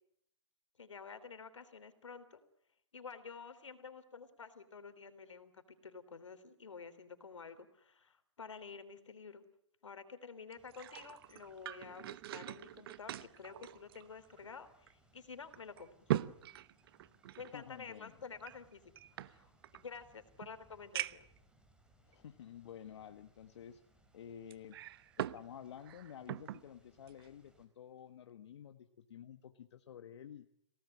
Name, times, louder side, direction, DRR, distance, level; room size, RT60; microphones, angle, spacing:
voice 1, 0.8-2.4 2.9-9.4 9.8-16.2 17.4-18.8 19.1-21.3, left 5 dB, 85° left, 11 dB, 3.4 m, -50 dB
sound 1, 10.5-14.5 14.9-15.0 15.5-17.5 18.4-19.8 20.4-20.5 20.9-21.4 22.1-22.2 24.5-25.5 25.8-26.6 27.1-27.3, right 13 dB, 50° right, 0.9 m, -41 dB
sound 2, 10.6-27.7, right 1 dB, 5° right, 4.3 m, -70 dB
voice 2, 17.5-18.1 22.0-23.8 24.1-24.8 25.2-30.5, left 9 dB, 65° left, 8 dB, 1.5 m, -51 dB
27.5 x 18.0 x 9.9 m, 0.76 s
hypercardioid pair, 130°, 15 cm